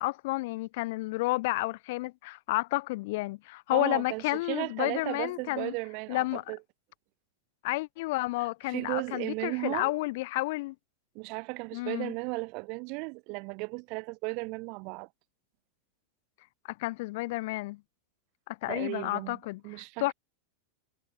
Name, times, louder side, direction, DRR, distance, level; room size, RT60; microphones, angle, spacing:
voice 1, 0.0-5.7 6.1-6.4 7.6-10.7 11.7-12.1 16.8-17.8 18.5-20.1, left 21 dB, 50° left, 0.6 m, -31 dB
voice 2, 3.7-6.6 8.7-9.9 11.2-15.1 18.7-19.4 19.6-20.1, right 32 dB, 45° right, 2.0 m, -35 dB
figure-of-eight pair, 90°, 0 cm